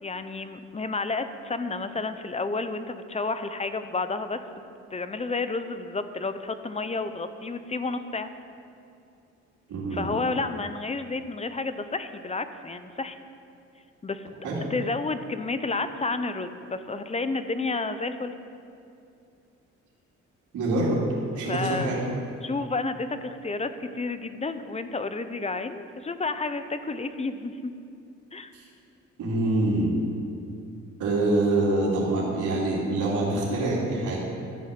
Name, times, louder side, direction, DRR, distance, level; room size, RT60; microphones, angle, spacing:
voice 1, 0.0-4.6 4.9-8.3 9.9-13.2 14.0-14.3 14.7-18.3 21.5-21.9 22.4-27.7 28.3-28.5, left 3 dB, 20° left, 10 dB, 0.8 m, -31 dB
voice 2, 9.7-10.1 14.4-14.6 20.5-21.0 21.4-22.0 28.5-28.6 29.2-30.0 31.0-34.2, right 2 dB, 80° right, -9 dB, 3.0 m, -25 dB
13.0 x 6.3 x 8.6 m, 2.6 s
cardioid pair, 90°, 30 cm